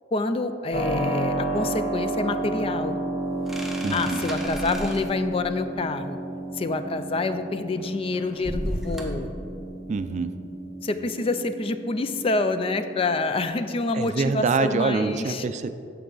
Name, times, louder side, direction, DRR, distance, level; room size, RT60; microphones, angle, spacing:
voice 1, 0.1-2.9 3.9-6.2 6.5-9.3 10.8-15.5, left 3 dB, 35° left, 9 dB, 0.4 m, -27 dB
Keyboard (musical), 0.7-13.4, right 2 dB, 60° left, 1.5 m, -32 dB
sound 1, 3.5-5.2 7.7-9.3, equal, ahead, 0.8 m, -33 dB
voice 2, 3.8-4.2 9.9-10.3 13.9-15.7, right 4 dB, 40° right, 11 dB, 0.3 m, -25 dB
13.5 x 4.6 x 3.9 m, 2.5 s
head